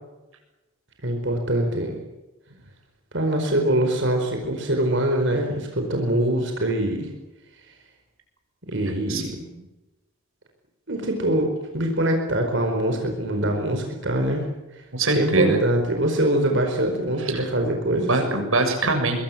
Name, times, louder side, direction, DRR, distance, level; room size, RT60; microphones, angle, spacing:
voice 1, 1.0-2.0 3.1-7.1 8.6-9.4 10.9-14.5 14.8-14.9 15.2-18.2, right 1 dB, 60° right, 3 dB, 4.7 m, -23 dB
voice 2, 9.1-9.5 14.9-15.6 17.3-17.4 18.1-19.2, right 2 dB, 80° right, 5 dB, 6.9 m, -23 dB
26.0 x 21.5 x 7.5 m, 1.1 s
head